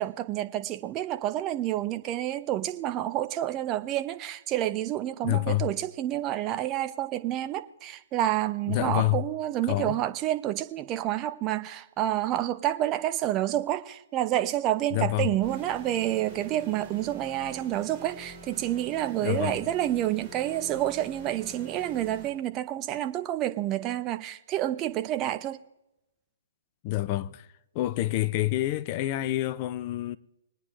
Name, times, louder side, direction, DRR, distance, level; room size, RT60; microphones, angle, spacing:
voice 1, 0.0-25.6, right 13 dB, 25° right, 0.7 m, -29 dB
voice 2, 5.2-5.7 8.7-9.2 9.7-10.0 14.9-15.3 19.2-19.6 26.8-27.5 27.7-30.2, left 16 dB, 35° left, 0.6 m, -27 dB
sound 1, 15.4-22.3, equal, ahead, 4.2 m, -46 dB
22.0 x 9.5 x 3.3 m
figure-of-eight pair, 130°, 0 cm